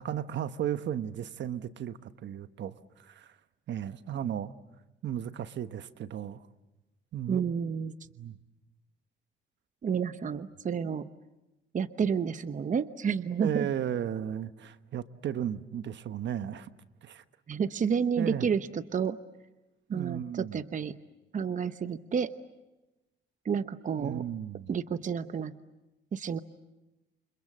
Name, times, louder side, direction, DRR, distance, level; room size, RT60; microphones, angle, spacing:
voice 1, 0.0-3.3 3.7-4.5 5.0-6.4 7.1-7.4 8.2-8.4 13.4-16.7 17.0-17.2 18.2-18.5 19.9-20.6 24.0-24.7, right 10 dB, 65° right, 11 dB, 1.2 m, -35 dB
voice 2, 7.3-7.9 9.8-11.1 11.7-13.7 17.5-19.2 19.9-21.0 21.3-22.3 23.4-24.2 24.7-25.6 26.1-26.4, right 6 dB, 40° right, 11 dB, 0.9 m, -30 dB
29.0 x 25.5 x 7.5 m, 1.0 s
cardioid pair, 90°, 20 cm